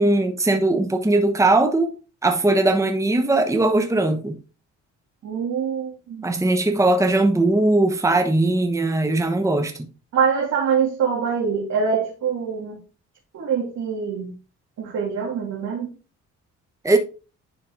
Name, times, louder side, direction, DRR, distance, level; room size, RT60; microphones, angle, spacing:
voice 1, 0.0-1.9 2.2-4.4 6.2-9.7 16.8-17.0, right 2 dB, 10° right, 1.1 m, -19 dB
voice 2, 5.2-6.4 10.1-12.8 13.3-14.3 14.8-15.9, right 6 dB, 70° right, 2.6 m, -24 dB
10.5 x 4.1 x 3.7 m
cardioid pair, 90°, 30 cm